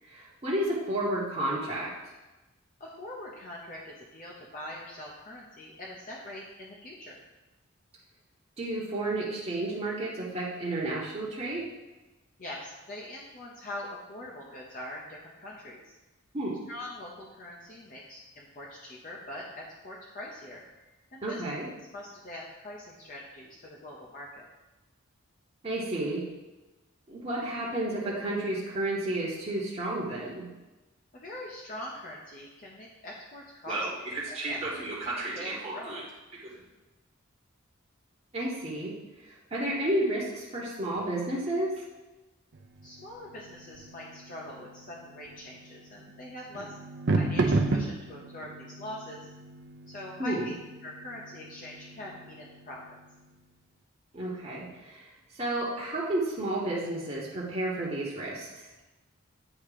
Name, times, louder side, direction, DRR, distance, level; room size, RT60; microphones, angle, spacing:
voice 1, 0.0-1.9 8.6-11.6 16.3-16.6 21.2-21.7 25.6-26.3 27.1-30.5 33.7-36.0 36.3-36.6 38.3-41.8 50.2-50.5 54.1-55.1 55.3-58.7, right 1 dB, 30° right, -6 dB, 1.0 m, -32 dB
voice 2, 2.8-7.2 12.4-15.9 16.7-20.6 21.1-21.4 21.9-24.5 31.1-36.0 42.8-46.7 47.1-49.3 49.9-50.5 50.8-52.8, left 1 dB, 40° left, -3 dB, 0.7 m, -43 dB
sound 1, 42.5-53.3, right 2 dB, 55° right, 0.6 m, -34 dB
8.6 x 2.9 x 4.9 m, 1.1 s
head